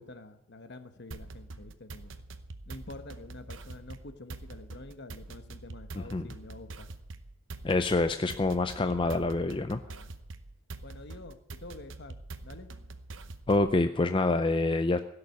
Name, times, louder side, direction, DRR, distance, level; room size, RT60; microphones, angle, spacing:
voice 1, 0.0-2.3 2.7-6.9 9.8-10.1 10.8-12.7, left 2 dB, 50° left, 10 dB, 1.1 m, -48 dB
sound 1, 1.1-13.8, right 2 dB, 60° right, 0.9 m, -45 dB
voice 2, 6.0-6.3 7.6-9.8 13.5-15.0, left 2 dB, 25° left, 9 dB, 0.4 m, -26 dB
16.5 x 6.8 x 9.3 m, 0.92 s
head